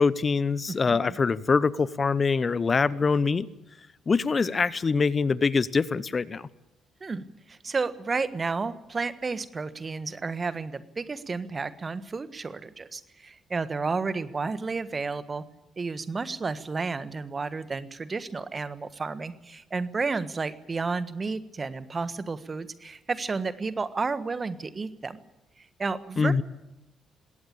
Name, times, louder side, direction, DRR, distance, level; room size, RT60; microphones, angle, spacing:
voice 1, 0.0-3.5 4.1-6.5 26.2-26.4, left 4 dB, 40° left, 20 dB, 0.8 m, -24 dB
voice 2, 0.7-1.2 7.0-15.4 15.8-25.2 25.8-26.4, right 4 dB, 35° right, 13 dB, 1.5 m, -32 dB
20.5 x 17.5 x 8.6 m, 0.95 s
figure-of-eight pair, 40°, 0 cm